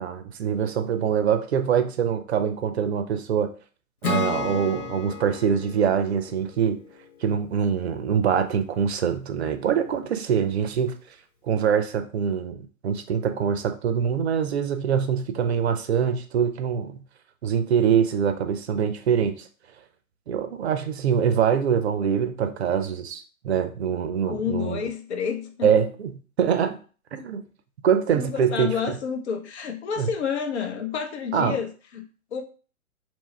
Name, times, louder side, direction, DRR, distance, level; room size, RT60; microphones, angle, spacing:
voice 1, 0.0-3.5 4.0-6.8 7.2-10.9 11.5-17.0 17.4-19.5 20.3-24.8 25.6-26.8 27.1-27.4 27.8-28.7 30.0-30.1 31.3-31.6, right 7 dB, 50° right, 0.5 m, -24 dB
Acoustic guitar / Strum, 4.0-7.5, left 3 dB, 80° left, 1.1 m, -32 dB
voice 2, 24.3-25.8 28.1-32.4, left 7 dB, 50° left, 0.7 m, -30 dB
3.0 x 2.3 x 4.2 m
figure-of-eight pair, 115°, 43 cm